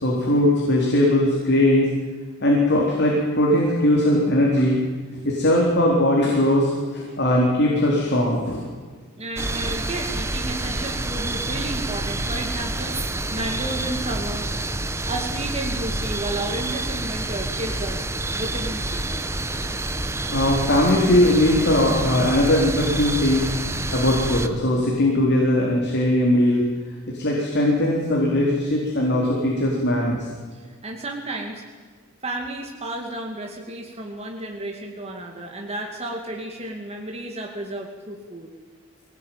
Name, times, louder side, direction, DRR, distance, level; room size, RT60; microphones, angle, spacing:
voice 1, 0.0-1.9 2.4-4.8 5.2-8.7 20.3-26.6 27.1-30.3, left 1 dB, 55° left, -2 dB, 4.2 m, -20 dB
voice 2, 9.2-14.5 15.1-19.1 30.5-31.6 32.2-38.5, right 2 dB, 30° right, 1 dB, 2.3 m, -32 dB
sound 1, 9.4-24.5, right 2 dB, 15° right, 1.1 m, -28 dB
23.5 x 18.5 x 9.2 m, 1.5 s
head